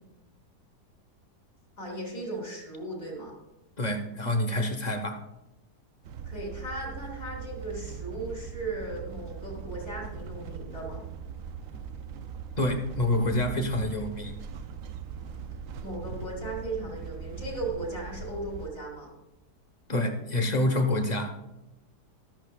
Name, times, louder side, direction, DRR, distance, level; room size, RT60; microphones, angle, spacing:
voice 1, 1.8-3.3 6.3-11.0 15.8-19.1, right 2 dB, 55° left, -2 dB, 4.2 m, -37 dB
voice 2, 3.8-5.2 12.6-14.4 19.9-21.3, left 1 dB, 30° left, 6 dB, 1.0 m, -27 dB
sound 1, 6.0-18.7, right 6 dB, 65° right, 1.0 m, -40 dB
13.5 x 13.0 x 2.4 m, 0.95 s
omnidirectional pair, 1.8 m